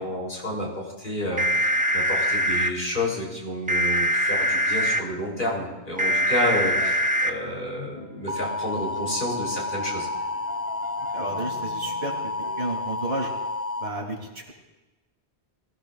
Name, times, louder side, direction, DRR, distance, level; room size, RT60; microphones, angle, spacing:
voice 1, 0.0-10.1, left 1 dB, 50° left, -2 dB, 3.6 m, -30 dB
sound 1, 1.4-2.7 3.7-5.0 6.0-7.3 8.3-13.9, equal, 10° right, 0.5 m, -25 dB
sound 2, 6.0-12.6, equal, 45° right, 1.9 m, -43 dB
voice 2, 11.1-12.1 12.5-13.3 13.8-14.5, right 2 dB, 75° right, 0 dB, 3.1 m, -32 dB
23.5 x 15.5 x 2.4 m, 1.1 s
omnidirectional pair, 1.1 m